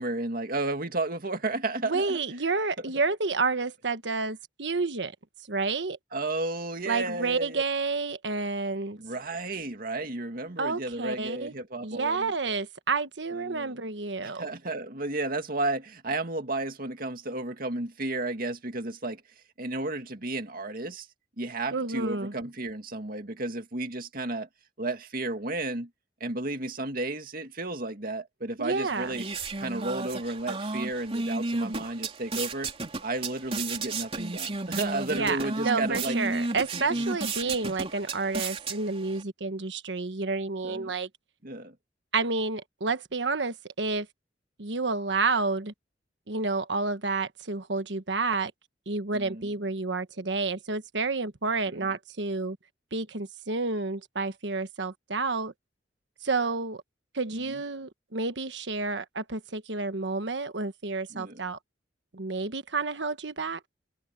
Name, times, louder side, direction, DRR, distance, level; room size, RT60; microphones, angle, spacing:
voice 1, 0.0-2.2 6.1-7.6 9.0-12.3 13.3-13.8 14.2-19.2 19.6-21.1 21.4-24.5 24.8-25.9 26.2-29.3 29.6-32.7 33.0-36.2 36.7-37.1 37.4-37.5 40.6-40.9 41.4-41.7 49.1-49.5 51.7-51.9 57.3-57.6 61.1-61.4, right 2 dB, 55° right, 2.3 m, -33 dB
voice 2, 1.8-5.1 5.5-6.0 6.9-9.0 10.6-11.5 11.8-14.4 21.7-22.3 28.6-29.2 35.1-41.1 42.1-44.1 44.6-45.7 46.3-48.5 48.9-52.6 52.9-55.5 56.2-56.8 57.1-61.6 62.1-63.6, right 3 dB, 85° right, 1.3 m, -30 dB
sound 1, 28.7-39.2, right 3 dB, 35° right, 3.3 m, -33 dB
head